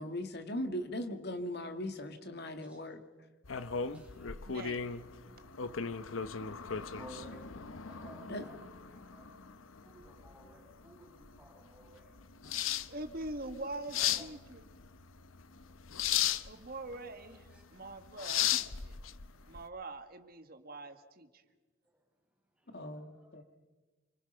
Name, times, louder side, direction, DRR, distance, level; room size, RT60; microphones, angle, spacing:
voice 1, 0.0-3.0 7.3-7.4 8.3-8.5 22.7-23.4, left 1 dB, 55° left, 7 dB, 2.3 m, -39 dB
sound 1, 3.4-19.6, left 9 dB, 90° left, 1.0 m, -37 dB
voice 2, 3.9-4.5 6.9-9.3 9.8-13.0 13.9-14.3 17.5-17.6 19.3-19.6 21.8-22.0 22.6-23.4, right 1 dB, 5° right, -1 dB, 5.6 m, -57 dB
voice 3, 4.5-4.9 12.9-14.6 16.4-18.5 18.8-19.0 19.4-21.4, right 2 dB, 50° right, 8 dB, 1.9 m, -44 dB
28.5 x 25.0 x 5.8 m, 1.2 s
head